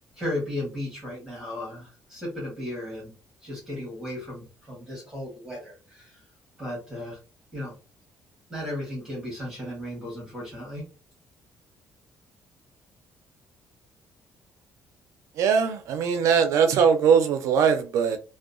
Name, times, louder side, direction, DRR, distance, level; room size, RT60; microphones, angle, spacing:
voice 1, 0.2-3.1 3.4-6.2 6.6-7.2 7.5-7.7 8.5-10.9, left 1 dB, 10° right, 1.1 m, -35 dB
voice 2, 15.4-18.2, right 6 dB, 65° right, 0.3 m, -21 dB
2.6 x 2.1 x 2.4 m
cardioid pair, 165°, 6 cm